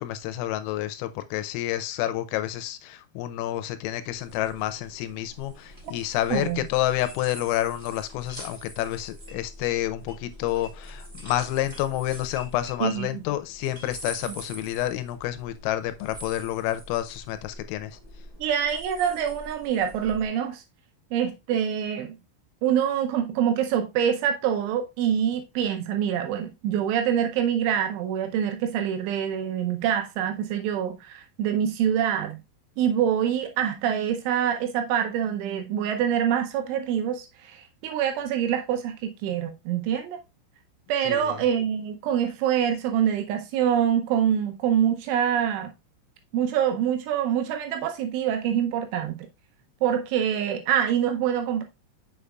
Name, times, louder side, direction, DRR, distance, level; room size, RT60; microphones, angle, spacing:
voice 1, 0.0-18.0 41.0-41.4, left 14 dB, 85° left, 3.3 m, -29 dB
sound 1, 4.1-20.3, equal, 25° right, 1.0 m, -44 dB
voice 2, 6.3-6.6 12.8-13.2 14.3-14.4 18.4-20.6 21.1-22.2 22.6-32.4 32.8-40.2 40.9-45.7 46.3-49.3 49.8-51.6, right 9 dB, 80° right, 3.0 m, -25 dB
7.1 x 6.6 x 2.3 m
omnidirectional pair, 5.9 m